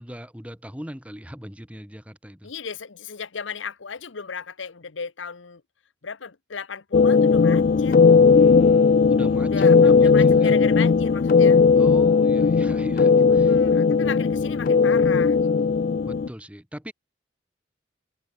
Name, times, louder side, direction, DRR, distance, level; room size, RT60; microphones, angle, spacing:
voice 1, 0.0-2.5 8.3-10.6 11.8-13.6 16.0-16.9, equal, 5° right, 2.6 m, -39 dB
voice 2, 2.4-5.6 6.0-8.0 9.4-11.6 13.4-15.9, left 6 dB, 80° left, 0.9 m, -35 dB
sound 1, 6.9-16.3, left 5 dB, 45° left, 0.3 m, -17 dB
head